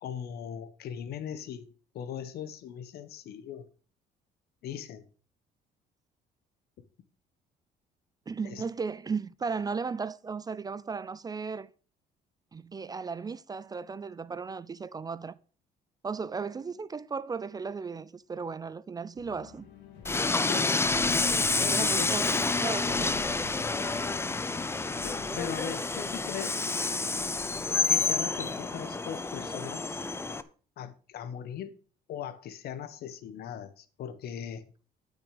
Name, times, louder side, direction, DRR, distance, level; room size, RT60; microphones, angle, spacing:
voice 1, 0.0-3.7 4.6-5.0 8.4-8.6 20.4-20.8 21.6-22.2 25.0-26.7 27.9-30.0 30.8-31.8 32.1-34.6, left 8 dB, 65° left, 1.3 m, -39 dB
voice 2, 8.3-11.7 12.5-15.4 16.0-19.7 21.7-23.2, right 5 dB, 20° right, 0.4 m, -35 dB
sound 1, 19.2-28.6, left 2 dB, 85° left, 2.3 m, -49 dB
Train, 20.0-30.4, left 3 dB, 15° left, 0.6 m, -29 dB
12.0 x 6.2 x 5.1 m
cardioid pair, 110°, 17 cm